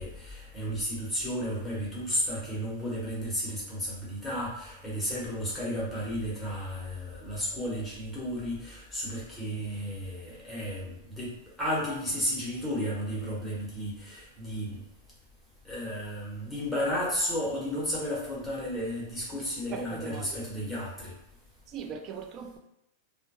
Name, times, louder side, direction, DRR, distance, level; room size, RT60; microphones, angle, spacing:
voice 1, 0.0-14.8 15.6-21.1, equal, 5° left, 1.0 m, -33 dB
voice 2, 19.7-20.3 21.7-22.6, right 6 dB, 35° right, 0.3 m, -39 dB
2.2 x 2.1 x 2.8 m
supercardioid pair, 140°, 0 cm